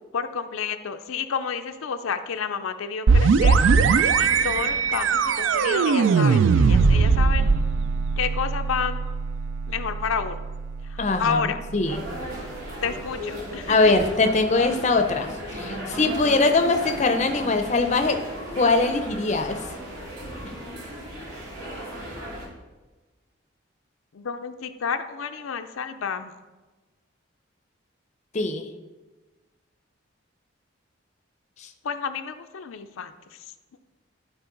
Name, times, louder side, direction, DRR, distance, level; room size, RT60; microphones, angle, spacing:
voice 1, 0.1-7.5 8.2-9.0 9.7-10.4 10.8-11.6 12.8-13.9 24.1-26.3 31.8-33.5, left 6 dB, 85° left, 8 dB, 0.5 m, -30 dB
sound 1, 3.1-12.6, right 5 dB, 70° right, 0.3 m, -21 dB
voice 2, 11.0-11.4 11.7-12.0 13.7-18.2 18.6-19.6 28.3-28.6, left 3 dB, 35° left, 7 dB, 0.5 m, -22 dB
sound 2, 11.8-22.5, equal, 85° right, 2.3 m, -36 dB
12.5 x 4.1 x 3.9 m, 1.2 s
head